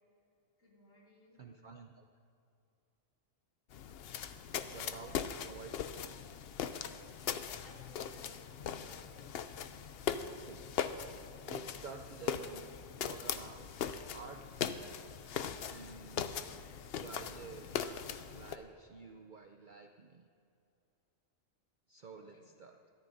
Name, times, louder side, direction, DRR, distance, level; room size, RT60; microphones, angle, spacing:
voice 1, 0.6-1.4 5.9-6.3 7.6-9.3 22.2-22.5, left 1 dB, 80° left, -5 dB, 3.3 m, -62 dB
voice 2, 1.4-2.0 4.7-5.7 10.4-10.6 11.5-12.6 13.0-13.7 14.1-14.4 15.7-16.4 16.9-18.0 18.3-20.3 21.9-22.8, right 4 dB, 55° right, 4 dB, 0.6 m, -50 dB
sound 1, 3.7-18.6, left 8 dB, 60° left, 0.7 m, -40 dB
21.0 x 14.0 x 2.7 m, 2.6 s
omnidirectional pair, 1.4 m